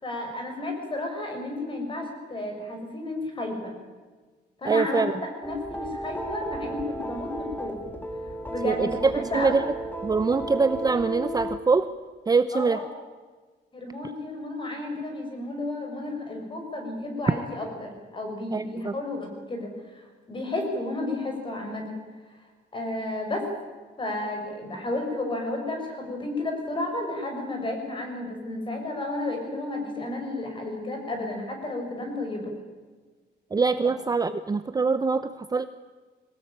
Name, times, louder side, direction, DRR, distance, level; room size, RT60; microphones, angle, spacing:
voice 1, 0.0-3.7 4.6-5.1 5.4-7.8 8.5-9.6 12.5-12.9 13.7-20.0 20.3-22.0 22.7-23.5 24.0-32.5 33.8-33.9, left 2 dB, 25° left, 3 dB, 6.4 m, -32 dB
voice 2, 4.6-5.1 8.6-9.6 10.0-11.9 12.3-12.8 18.5-18.9 33.5-35.6, right 4 dB, 20° right, 12 dB, 0.7 m, -24 dB
sound 1, 5.4-11.6, equal, 10° left, 2.2 m, -34 dB
22.5 x 19.0 x 8.9 m, 1.4 s
cardioid pair, 150°, 18 cm